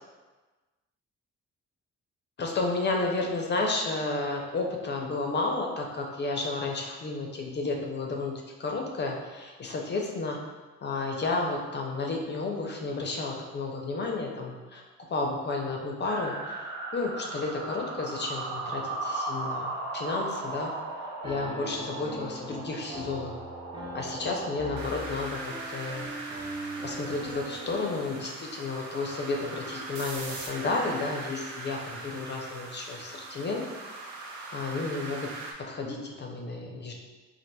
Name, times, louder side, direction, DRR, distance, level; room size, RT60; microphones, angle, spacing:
voice 1, 2.4-10.4 10.8-14.8 15.1-20.7 21.2-23.3 23.9-26.1 26.8-33.7 34.5-36.9, left 3 dB, 35° left, 0 dB, 0.5 m, -32 dB
sound 1, 16.0-35.5, right 2 dB, 75° right, 0.6 m, -38 dB
Piano, 21.2-28.1, right 1 dB, 15° right, 0.5 m, -41 dB
4.1 x 2.4 x 2.2 m, 1.3 s
cardioid pair, 90°, 30 cm